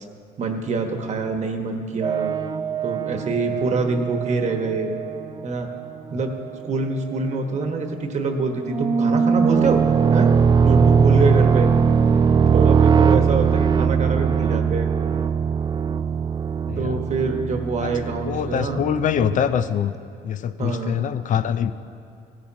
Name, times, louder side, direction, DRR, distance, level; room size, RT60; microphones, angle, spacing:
voice 1, 0.4-2.3 2.8-4.9 5.4-5.7 6.1-6.3 6.6-9.8 10.1-10.3 10.6-11.7 12.5-14.9 16.8-18.8 20.6-21.0, right 3 dB, 45° right, 4 dB, 1.3 m, -25 dB
sound 1, 2.0-6.5 7.1-7.2 8.6-19.7, right 6 dB, 25° right, 0.3 m, -20 dB
voice 2, 16.7-17.0 17.8-19.9 20.2-21.7, left 8 dB, 50° left, 11 dB, 0.4 m, -24 dB
16.0 x 13.0 x 2.9 m, 2.3 s
cardioid pair, 110°, 17 cm